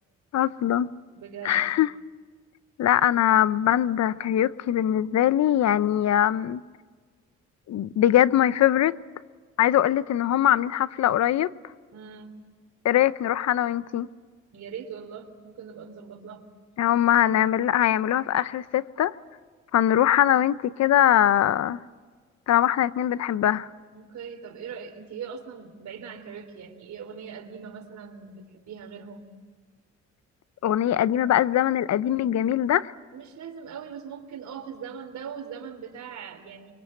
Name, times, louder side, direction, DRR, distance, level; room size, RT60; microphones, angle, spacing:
voice 1, 0.3-0.9 1.4-1.9 2.8-6.6 7.7-9.0 9.6-11.5 12.8-14.1 16.8-19.1 19.7-21.8 22.5-23.7 30.6-32.9, left 11 dB, 60° left, 0.7 m, -22 dB
voice 2, 1.2-1.7 11.9-12.3 14.5-16.5 23.9-29.3 33.1-36.7, right 7 dB, 65° right, 3.4 m, -40 dB
25.0 x 23.0 x 7.9 m
cardioid pair, 90°, 30 cm